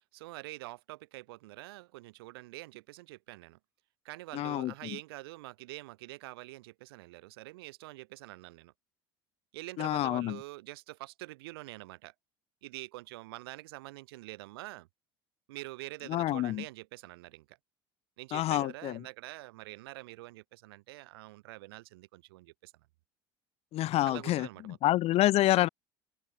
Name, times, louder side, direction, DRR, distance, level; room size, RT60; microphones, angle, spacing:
voice 1, 0.1-3.6 4.0-8.7 9.5-12.1 12.6-14.9 15.5-17.6 18.2-22.7 24.0-24.8, right 20 dB, 75° right, 3.3 m, -46 dB
voice 2, 4.3-4.7 9.8-10.4 16.1-16.6 18.3-19.0 23.7-24.5 24.8-25.7, left 15 dB, 55° left, 0.9 m, -27 dB
open air
hypercardioid pair, 70°, 13 cm